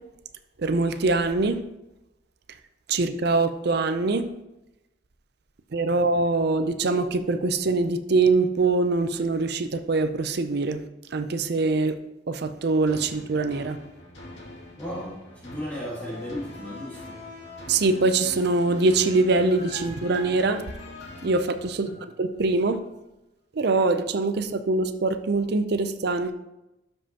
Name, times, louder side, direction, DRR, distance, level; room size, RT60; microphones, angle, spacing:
voice 1, 0.6-1.6 2.9-4.3 5.7-10.8 11.1-11.9 12.3-13.8 17.7-20.6 21.2-21.9 22.2-22.8 23.6-26.3, right 3 dB, 60° right, 10 dB, 0.5 m, -23 dB
sound 1, 12.9-22.3 22.7-22.8, left 2 dB, 70° left, 2.4 m, -42 dB
voice 2, 14.8-17.2 21.8-22.0, equal, 10° left, -7 dB, 1.6 m, -35 dB
12.0 x 5.3 x 2.9 m, 0.93 s
head